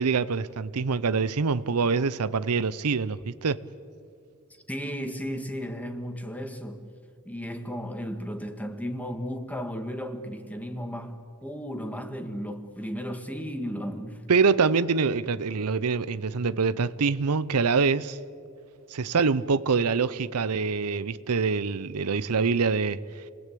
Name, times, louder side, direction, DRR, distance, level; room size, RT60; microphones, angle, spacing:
voice 1, 0.0-3.6 14.3-18.2 18.9-23.0, right 5 dB, 85° right, 0.7 m, -25 dB
voice 2, 4.7-6.8 7.2-14.2, equal, 5° left, 1.7 m, -34 dB
29.0 x 20.5 x 8.5 m
head